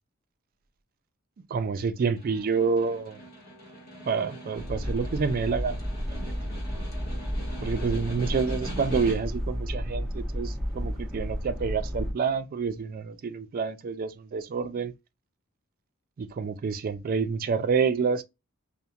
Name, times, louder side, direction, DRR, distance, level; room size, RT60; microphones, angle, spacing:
voice 1, 1.5-3.2 4.1-5.8 6.1-6.3 7.6-14.9 16.2-18.2, right 5 dB, 45° right, 0.3 m, -28 dB
Snare drum, 2.0-9.5, equal, 50° left, 1.0 m, -43 dB
sound 1, 4.6-12.1, equal, ahead, 0.9 m, -32 dB
2.4 x 2.1 x 2.7 m
head